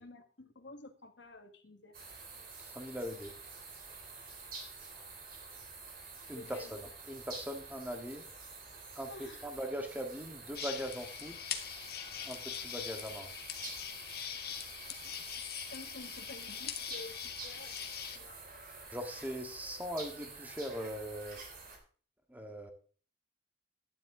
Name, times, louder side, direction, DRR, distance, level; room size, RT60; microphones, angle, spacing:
voice 1, 0.0-1.9 6.3-6.7 9.1-9.5 15.7-17.8 18.1-18.4, left 3 dB, 70° left, 6 dB, 1.6 m, -50 dB
sound 1, 1.9-21.8, right 4 dB, 50° right, 3.9 m, -49 dB
voice 2, 2.6-3.3 6.3-8.2 9.0-9.1 9.4-11.5 12.3-13.3 18.9-21.4 22.3-22.7, equal, 10° right, 4 dB, 1.7 m, -40 dB
sound 2, 10.5-18.2, left 9 dB, 55° left, 1.4 m, -42 dB
12.0 x 10.5 x 3.7 m, 0.41 s
head